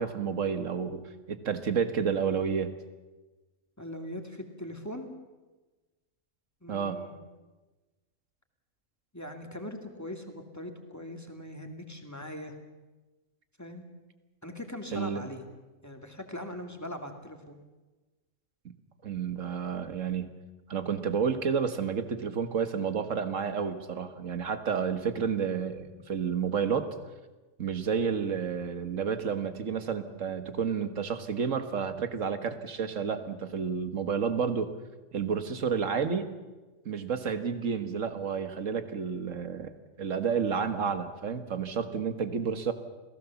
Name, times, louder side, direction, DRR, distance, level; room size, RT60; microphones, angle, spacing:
voice 1, 0.0-2.7 6.7-7.0 14.9-15.2 19.0-20.3 20.7-26.9 27.6-34.7 35.1-36.3 36.9-39.7 40.0-42.7, right 6 dB, 75° right, 9 dB, 1.8 m, -30 dB
voice 2, 3.8-5.1 6.6-7.1 9.1-12.5 13.6-13.9 14.4-15.4 15.8-17.6, left 1 dB, 15° left, 4 dB, 2.3 m, -41 dB
27.5 x 17.0 x 7.1 m, 1.2 s
omnidirectional pair, 1.3 m